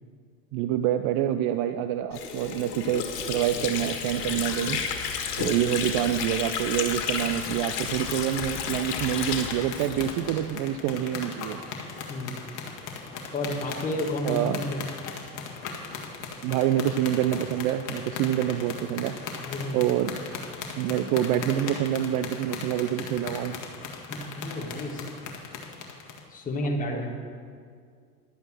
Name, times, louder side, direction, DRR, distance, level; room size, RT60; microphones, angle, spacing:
voice 1, 0.5-4.8 5.4-11.6 14.2-14.6 16.4-19.1 19.7-20.1 20.8-23.5 26.9-27.0, right 11 dB, 45° right, 10 dB, 0.5 m, -26 dB
Water / Sink (filling or washing), 2.1-10.7, left 7 dB, 75° left, 1.8 m, -32 dB
sound 1, 6.8-26.2, left 5 dB, 40° left, 1.8 m, -38 dB
voice 2, 12.1-12.4 13.3-14.8 19.4-19.8 24.1-25.0 26.3-27.1, left 1 dB, 15° left, -1 dB, 1.6 m, -31 dB
11.5 x 8.9 x 6.2 m, 2.1 s
hypercardioid pair, 100°, 47 cm